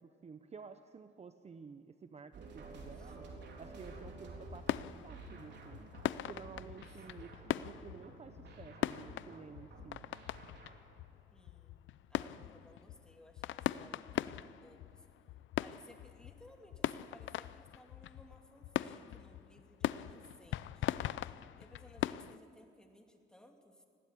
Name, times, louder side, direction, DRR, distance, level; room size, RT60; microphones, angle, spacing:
voice 1, 0.0-3.3 3.6-5.9 6.2-10.0, right 5 dB, 35° right, 10 dB, 0.8 m, -52 dB
sound 1, 2.3-10.9, right 3 dB, 60° right, 3.8 m, -52 dB
sound 2, 3.9-22.4, left 13 dB, 75° left, 0.5 m, -41 dB
voice 2, 7.1-7.4 11.3-15.1 15.6-20.9 21.6-23.8, equal, 5° left, 3 dB, 2.8 m, -61 dB
20.5 x 16.5 x 8.4 m, 2.5 s
cardioid pair, 90°, 20 cm